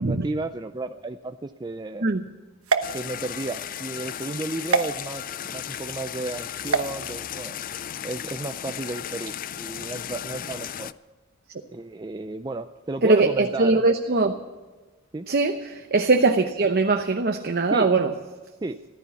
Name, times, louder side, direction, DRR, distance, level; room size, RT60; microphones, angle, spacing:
voice 1, 0.0-2.1 2.9-7.6 8.0-10.9 11.7-13.8 15.1-15.3 17.7-17.9 18.6-18.8, right 2 dB, 20° right, 8 dB, 0.5 m, -33 dB
sound 1, 2.6-3.7 4.7-4.9 6.6-6.9, right 4 dB, 90° right, 1.0 m, -25 dB
sound 2, 2.8-10.9, left 10 dB, 40° left, 0.4 m, -35 dB
voice 2, 13.0-14.3 15.3-18.1, right 3 dB, 50° right, 5 dB, 0.8 m, -21 dB
14.5 x 13.5 x 7.1 m, 1.3 s
head